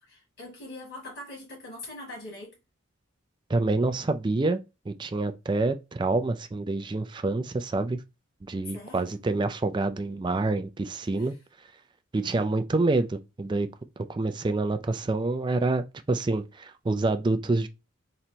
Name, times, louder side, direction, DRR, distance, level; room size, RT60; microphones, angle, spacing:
voice 1, 0.0-2.6 8.6-9.2 11.2-11.4, left 2 dB, 65° left, 1.9 m, -42 dB
voice 2, 3.5-4.6 4.9-8.0 8.5-11.3 12.1-13.7 14.1-17.7, right 2 dB, 20° right, 0.3 m, -27 dB
3.9 x 2.1 x 4.5 m
head